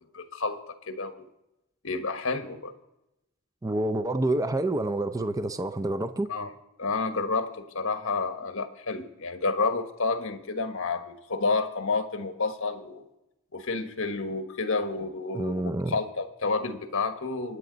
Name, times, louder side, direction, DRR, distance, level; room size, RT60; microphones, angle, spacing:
voice 1, 0.1-0.6 0.9-1.2 1.8-2.7 6.3-6.5 6.8-13.0 13.5-15.6 15.9-17.6, left 3 dB, 65° left, 1.4 m, -30 dB
voice 2, 3.6-6.3 15.3-16.0, right 1 dB, 15° right, 0.5 m, -28 dB
25.0 x 9.6 x 3.9 m
head